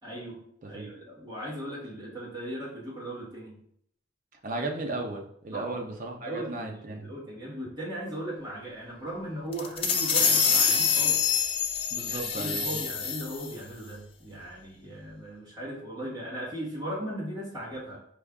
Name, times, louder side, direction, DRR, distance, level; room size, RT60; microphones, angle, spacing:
voice 1, 0.0-3.6 5.5-5.8 6.2-11.2 12.1-18.0, right 1 dB, 20° right, -7 dB, 1.1 m, -38 dB
voice 2, 4.4-7.1 11.9-12.8, right 2 dB, 40° right, 2 dB, 0.6 m, -35 dB
sound 1, 9.5-13.5, left 6 dB, 30° left, 0.3 m, -25 dB
5.1 x 2.4 x 3.5 m, 0.67 s
head